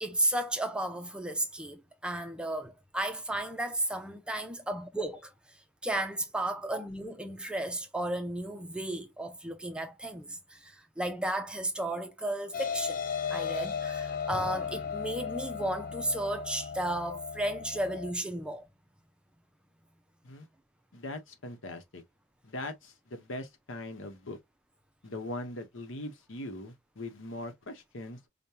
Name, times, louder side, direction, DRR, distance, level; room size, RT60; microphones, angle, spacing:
voice 1, 0.0-5.3 5.8-13.0 13.3-18.7, right 1 dB, 5° right, 0.5 m, -34 dB
sound 1, 12.5-18.1, left 6 dB, 45° left, 0.5 m, -35 dB
voice 2, 20.9-22.0 22.4-24.4 25.0-28.3, left 1 dB, 75° left, 1.0 m, -41 dB
5.1 x 2.2 x 2.7 m
head